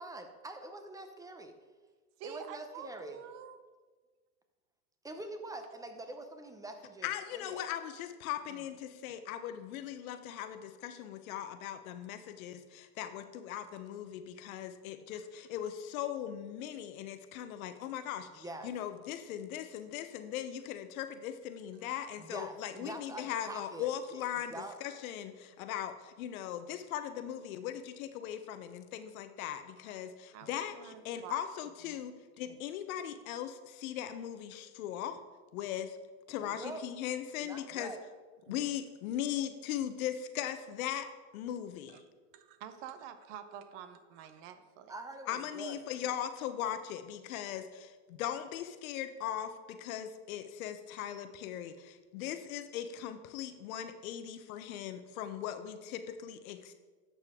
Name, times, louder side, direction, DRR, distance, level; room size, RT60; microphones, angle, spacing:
voice 1, 0.0-1.5 2.2-3.2 5.0-7.6 18.3-18.7 22.2-24.8 36.3-36.8 37.4-38.0 44.9-45.8, right 2 dB, 10° right, 7 dB, 0.7 m, -45 dB
voice 2, 2.2-3.6 8.5-8.6 10.0-10.2 21.8-21.9 23.8-23.9 29.9-30.0 30.3-31.4 31.9-32.0 32.5-32.6 38.5-38.7 41.9-42.0 42.3-44.9, right 9 dB, 55° right, 10 dB, 0.9 m, -48 dB
voice 3, 7.0-35.2 35.5-36.0 36.3-37.9 38.5-42.0 45.3-56.7, left 10 dB, 70° left, 9 dB, 0.9 m, -39 dB
11.5 x 6.7 x 3.6 m, 1.4 s
supercardioid pair, 120°, 44 cm